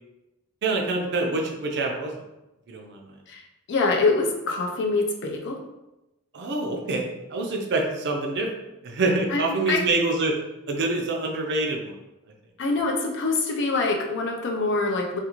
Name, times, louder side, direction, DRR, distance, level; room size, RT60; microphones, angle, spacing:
voice 1, 0.6-2.1 2.7-3.1 6.3-8.5 8.8-10.3 10.7-12.0, right 2 dB, 55° right, 1 dB, 0.5 m, -26 dB
voice 2, 3.7-5.6 9.3-9.8 12.6-15.2, left 3 dB, 55° left, 1 dB, 0.4 m, -25 dB
2.4 x 2.4 x 2.9 m, 0.96 s
head